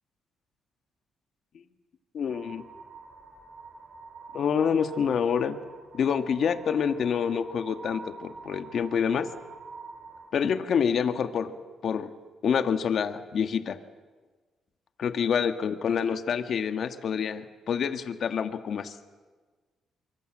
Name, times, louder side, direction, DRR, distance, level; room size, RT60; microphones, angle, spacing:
voice 1, 2.1-2.6 4.3-5.6 5.9-9.3 10.3-11.5 11.8-12.1 12.4-13.8 15.0-19.0, left 7 dB, 60° left, 8 dB, 1.5 m, -27 dB
sound 1, 2.2-10.3, right 4 dB, 45° right, 5.8 m, -46 dB
25.0 x 24.0 x 7.8 m, 1.4 s
cardioid pair, 90°, 0 cm